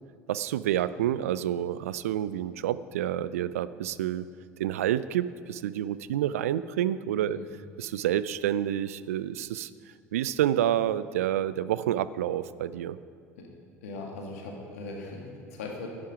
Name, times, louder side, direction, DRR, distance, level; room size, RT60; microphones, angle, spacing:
voice 1, 0.3-4.3 4.6-7.4 7.8-9.7 10.1-13.0, right 11 dB, 75° right, 16 dB, 0.3 m, -28 dB
voice 2, 13.8-15.9, left 3 dB, 75° left, 0 dB, 2.0 m, -39 dB
11.5 x 8.8 x 4.8 m, 2.2 s
hypercardioid pair, 65°, 8 cm